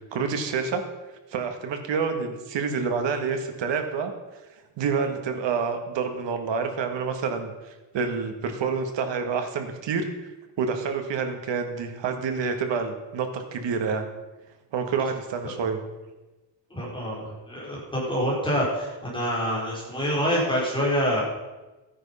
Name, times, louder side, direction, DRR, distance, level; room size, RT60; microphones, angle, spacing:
voice 1, 0.1-0.8 1.3-4.1 4.8-10.1 10.6-14.0 14.7-15.8, right 5 dB, 85° right, 6 dB, 1.8 m, -28 dB
voice 2, 16.7-21.2, equal, 10° left, -6 dB, 4.6 m, -26 dB
13.5 x 9.7 x 5.6 m, 1.1 s
wide cardioid pair, 180°, 42 cm